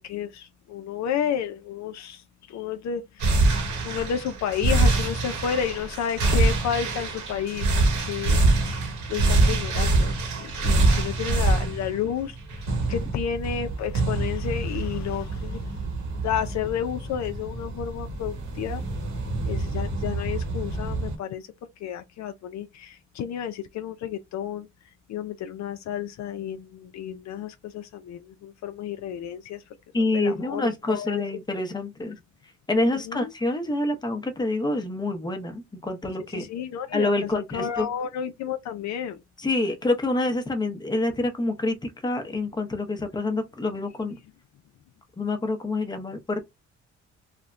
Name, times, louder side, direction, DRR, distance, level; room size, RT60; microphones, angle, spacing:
voice 1, 0.0-3.5 3.8-12.4 12.9-15.6 16.1-18.8 19.4-21.5 21.8-24.7 25.1-29.6 30.0-31.2 32.9-33.3 36.3-39.2, left 8 dB, 65° left, 0.5 m, -31 dB
sound 1, 3.2-21.2, right 2 dB, 75° right, 1.1 m, -25 dB
voice 2, 29.9-32.2 32.7-36.5 36.9-37.9 39.4-44.2 45.2-46.4, left 2 dB, 15° left, 0.7 m, -27 dB
3.3 x 2.1 x 2.4 m
cardioid pair, 90°, 30 cm